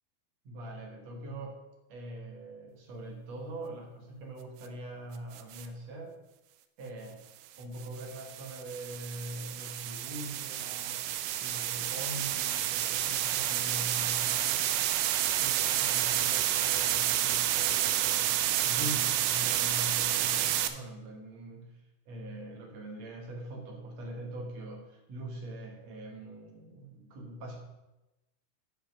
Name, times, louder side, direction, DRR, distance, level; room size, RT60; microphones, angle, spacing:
voice 1, 0.5-1.6 1.9-6.2 6.8-7.3 7.6-14.8 15.4-18.4 18.6-27.6, right 1 dB, 60° right, 1 dB, 2.0 m, -43 dB
sound 1, 5.3-5.7 7.8-20.7, right 12 dB, 90° right, 1.8 m, -29 dB
12.0 x 5.1 x 5.3 m, 0.99 s
omnidirectional pair, 4.5 m